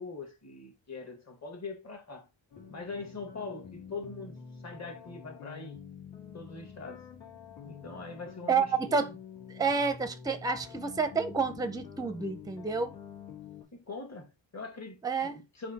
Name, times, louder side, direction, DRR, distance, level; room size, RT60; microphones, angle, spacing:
voice 1, 0.0-2.3 2.7-5.8 6.3-7.0 7.6-9.2 13.7-15.7, left 4 dB, 35° left, 1.5 m, -42 dB
sound 1, 2.5-13.6, left 7 dB, 70° left, 2.0 m, -48 dB
voice 2, 8.5-9.1 9.5-12.9 15.0-15.3, right 5 dB, 10° right, 0.5 m, -29 dB
4.3 x 2.7 x 4.0 m
cardioid pair, 95°, 46 cm